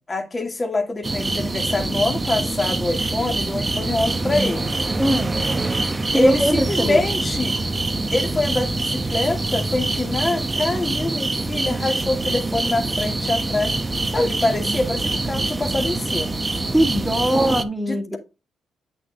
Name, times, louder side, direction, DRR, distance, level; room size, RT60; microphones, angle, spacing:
voice 1, 0.1-4.7 6.1-7.6 8.1-13.8 14.1-16.4 17.9-18.2, left 2 dB, 30° left, 2.2 m, -25 dB
sound 1, 1.0-17.6, right 2 dB, 25° right, 0.9 m, -25 dB
voice 2, 5.0-5.3 6.1-7.0 11.7-11.9 13.3-13.4 13.8-13.9 16.7-18.2, equal, 5° right, 2.0 m, -21 dB
9.2 x 6.2 x 2.5 m
supercardioid pair, 55°, 0 cm